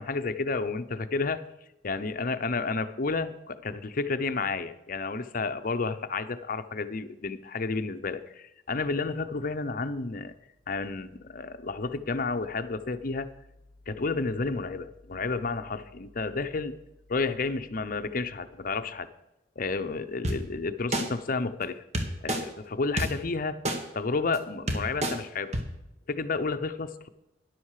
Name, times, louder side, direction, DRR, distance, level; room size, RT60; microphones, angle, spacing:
voice 1, 0.0-1.4 1.8-10.3 10.7-13.3 13.9-16.8 17.1-19.1 19.6-21.8 22.2-23.6 23.9-25.6 26.1-27.1, left 4 dB, 50° left, 10 dB, 0.7 m, -31 dB
sound 1, 20.2-20.4 20.9-21.0 21.9-22.4 23.0-23.1 23.6-23.8 24.3-24.4 24.7-25.1 25.5-25.6, right 1 dB, 40° right, 1.7 m, -27 dB
13.0 x 11.0 x 4.9 m, 0.89 s
head